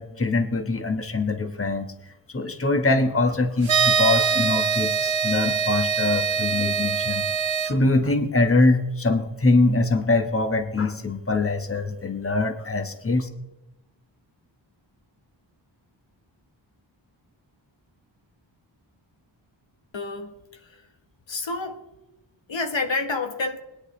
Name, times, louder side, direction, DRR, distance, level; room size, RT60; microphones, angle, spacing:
voice 1, 0.0-1.9 2.3-7.3 7.6-13.3, left 2 dB, 30° left, 6 dB, 1.2 m, -23 dB
sound 1, 3.6-7.7, right 6 dB, 75° right, 1.0 m, -23 dB
voice 2, 19.9-20.3 21.3-21.8 22.5-23.6, left 3 dB, 70° left, 5 dB, 1.3 m, -28 dB
21.0 x 10.0 x 3.2 m, 1.0 s
wide cardioid pair, 85°, 47 cm